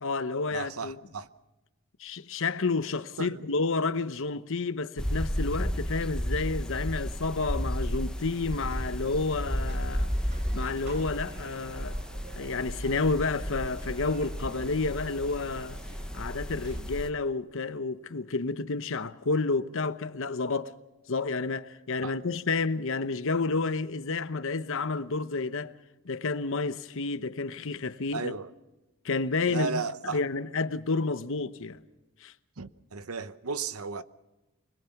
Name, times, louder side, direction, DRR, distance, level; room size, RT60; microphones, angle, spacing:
voice 1, 0.0-1.0 2.0-10.1 10.5-12.0 12.4-15.8 16.1-20.7 21.1-25.8 26.0-28.4 29.0-31.8 32.2-32.3, left 3 dB, 65° left, 1.0 m, -30 dB
voice 2, 0.5-1.3 3.2-3.4 22.0-22.1 28.1-28.5 29.5-30.2 32.6-34.0, right 4 dB, 75° right, 0.9 m, -34 dB
sound 1, 5.0-17.1, equal, 5° left, 0.9 m, -33 dB
sound 2, 8.7-16.8, right 2 dB, 50° right, 2.6 m, -49 dB
25.0 x 21.5 x 5.9 m
head